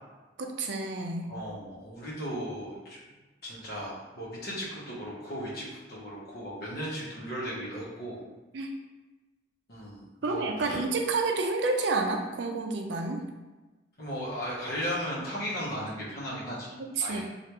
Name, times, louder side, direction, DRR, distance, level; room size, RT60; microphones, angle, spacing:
voice 1, 0.4-1.3 8.5-8.7 10.2-13.2 16.8-17.2, right 3 dB, 75° right, 3 dB, 0.4 m, -29 dB
voice 2, 1.3-3.0 3.4-8.2 9.7-10.8 14.0-16.8 17.0-17.2, equal, 60° left, -6 dB, 0.8 m, -36 dB
3.2 x 2.4 x 2.9 m, 1.2 s
head